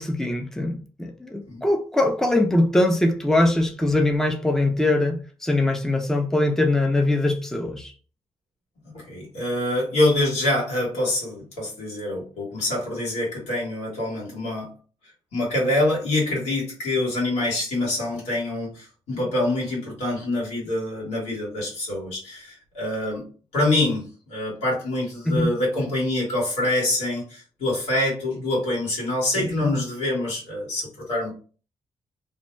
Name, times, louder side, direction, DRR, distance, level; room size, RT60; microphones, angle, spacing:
voice 1, 0.0-7.9 25.3-25.5 29.4-29.7, left 2 dB, 5° left, 0.5 m, -22 dB
voice 2, 8.9-14.7 15.3-23.3 23.5-31.3, left 1 dB, 85° left, 1.5 m, -25 dB
2.6 x 2.1 x 3.1 m
cardioid pair, 65°, 11 cm